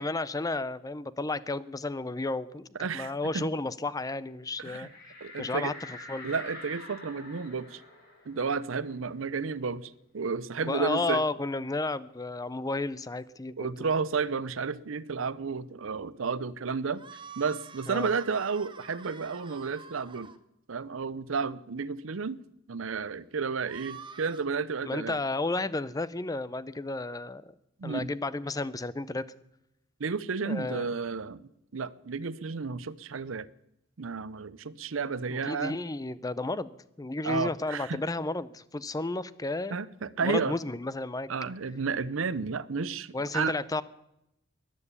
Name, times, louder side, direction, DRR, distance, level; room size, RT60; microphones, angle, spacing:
voice 1, 0.0-2.7 2.9-4.9 5.4-6.3 10.6-13.9 17.9-18.1 24.9-27.4 27.8-29.3 30.5-30.8 35.3-39.8 40.2-41.3 43.1-43.8, left 2 dB, 20° left, 0.5 m, -32 dB
voice 2, 2.8-3.5 4.6-4.9 5.2-5.7 6.2-7.8 8.3-11.2 13.6-17.0 17.4-20.3 20.7-22.4 22.7-25.2 27.8-28.1 30.0-33.5 34.0-35.8 37.2-38.0 39.7-40.6 41.3-43.5, right 5 dB, 75° right, 0.7 m, -32 dB
sound 1, 4.8-10.0 10.4-10.5 10.8-12.5, left 2 dB, 55° left, 7.2 m, -47 dB
sound 2, 16.9-20.4 23.6-24.5, right 6 dB, 25° right, 0.9 m, -48 dB
14.0 x 11.0 x 8.4 m
head